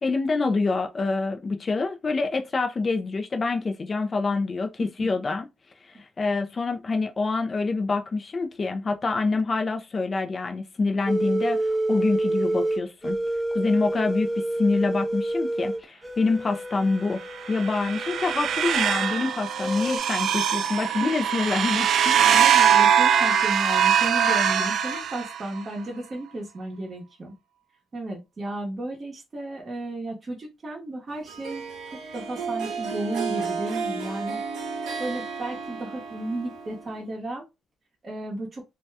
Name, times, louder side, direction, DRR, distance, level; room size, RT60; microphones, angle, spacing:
voice 1, 0.0-5.5 5.8-13.2 13.5-17.2 17.5-22.4, left 3 dB, 35° left, 0.4 m, -26 dB
sound 1, 11.1-19.2 19.6-20.0, right 1 dB, 10° right, 0.7 m, -28 dB
sound 2, 17.3-25.6, right 8 dB, 65° right, 0.3 m, -22 dB
voice 2, 22.2-27.3 27.9-31.6 31.9-34.4 35.0-37.4 38.0-38.6, right 1 dB, 35° right, 1.0 m, -33 dB
Harp, 31.3-37.1, right 5 dB, 90° right, 0.7 m, -33 dB
2.7 x 2.2 x 3.3 m
cardioid pair, 110°, 0 cm